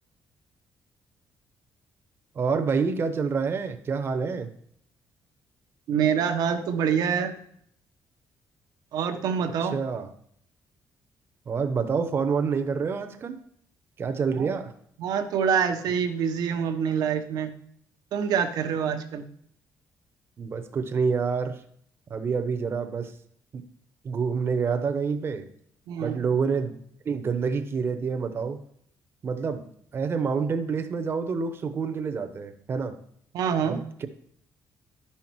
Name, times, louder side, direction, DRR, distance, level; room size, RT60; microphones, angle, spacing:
voice 1, 2.3-4.5 9.6-10.1 11.5-13.4 14.0-14.7 20.4-21.6 22.1-23.1 23.5-23.6 24.0-25.5 26.0-26.7 27.0-28.6 29.2-29.6 29.9-33.0 33.6-34.1, right 5 dB, 35° right, 9 dB, 0.9 m, -27 dB
voice 2, 5.9-7.3 8.9-9.8 14.4-14.5 15.0-17.5 18.1-19.3 25.9-26.2 33.3-33.8, right 7 dB, 75° right, 7 dB, 1.0 m, -26 dB
11.5 x 5.7 x 4.6 m, 0.66 s
cardioid pair, 145°, 7 cm